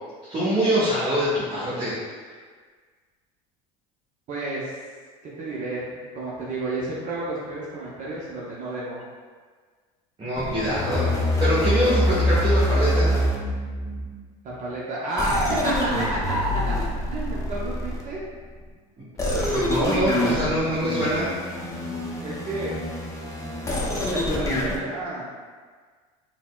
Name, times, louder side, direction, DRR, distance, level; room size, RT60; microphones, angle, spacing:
voice 1, 0.3-1.9 10.2-11.1 11.4-13.1 19.0-19.1 19.5-21.3, equal, 30° right, -10 dB, 1.0 m, -24 dB
voice 2, 4.3-4.7 5.4-9.0 14.4-16.8 17.1-18.2 22.2-22.8 24.1-25.3, right 2 dB, 45° right, -6 dB, 0.6 m, -31 dB
sound 1, 10.4-14.1 15.2-18.2 19.2-24.8, left 1 dB, 20° left, 0.6 m, -25 dB
4.0 x 2.1 x 2.2 m, 1.5 s
supercardioid pair, 95°, 18 cm